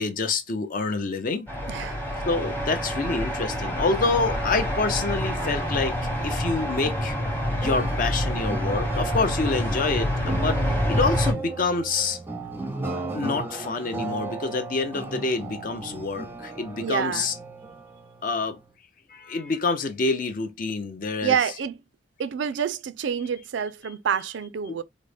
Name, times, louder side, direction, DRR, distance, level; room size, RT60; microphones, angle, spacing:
voice 1, 0.0-1.5 2.2-6.0 6.2-7.2 7.6-10.6 10.9-12.2 13.1-17.3 18.2-18.6 19.1-21.4 24.7-24.8, left 3 dB, 50° left, 0.6 m, -27 dB
sound 1, 1.5-11.3, equal, 10° left, 0.9 m, -27 dB
voice 2, 1.7-2.0 16.8-17.3 21.2-21.8 22.2-24.8, right 7 dB, 85° right, 0.4 m, -27 dB
sound 2, 4.0-18.7, right 3 dB, 10° right, 0.5 m, -36 dB
3.7 x 2.1 x 3.3 m
head